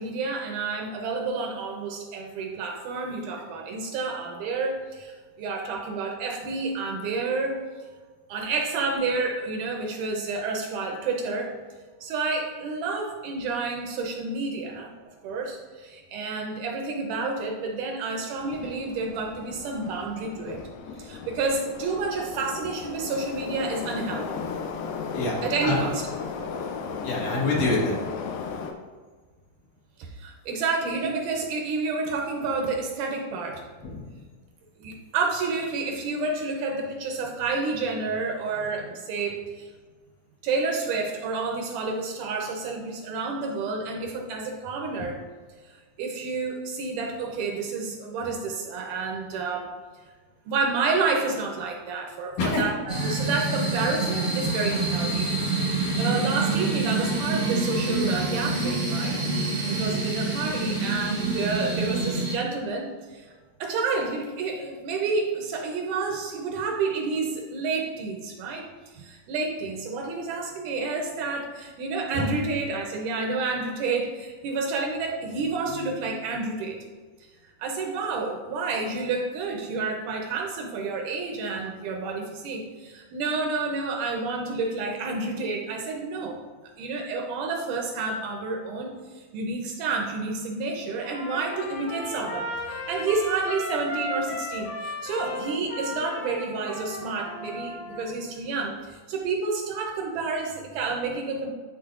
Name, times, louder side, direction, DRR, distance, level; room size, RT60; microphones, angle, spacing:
voice 1, 0.0-7.6 8.3-11.6 12.0-14.9 15.2-20.6 21.0-24.4 25.4-26.0 30.0-33.6 34.8-39.7 40.4-45.2 45.6-49.7 50.5-52.8 53.0-55.7 56.0-63.3 63.6-68.7 68.9-76.8 77.6-86.4 86.8-101.5, right 4 dB, 75° right, 1 dB, 2.1 m, -29 dB
Subway metro underground, 18.4-28.7, left 5 dB, 90° left, 2.4 m, -35 dB
voice 2, 27.0-28.0 33.8-34.2 52.4-52.7 54.6-54.8 95.2-95.4, left 2 dB, 70° left, -4 dB, 2.8 m, -27 dB
sound 1, 52.9-62.4, right 3 dB, 25° right, 1.1 m, -26 dB
Trumpet, 91.0-98.1, left 1 dB, 45° left, 2.5 m, -35 dB
10.0 x 4.2 x 2.4 m, 1.4 s
omnidirectional pair, 3.9 m